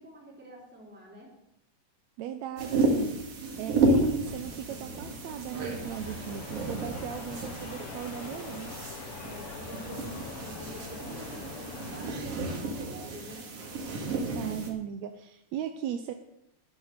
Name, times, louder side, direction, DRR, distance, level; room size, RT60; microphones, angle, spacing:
voice 1, 0.0-1.3 9.2-13.5, right 1 dB, 5° right, -2 dB, 3.7 m, -47 dB
voice 2, 2.2-8.8 14.1-16.1, right 10 dB, 70° right, 7 dB, 1.8 m, -37 dB
sound 1, 2.6-14.7, right 2 dB, 50° right, 2.9 m, -32 dB
sound 2, 4.5-12.1, left 5 dB, 85° left, 3.1 m, -44 dB
13.5 x 10.5 x 6.8 m, 0.82 s
omnidirectional pair, 3.7 m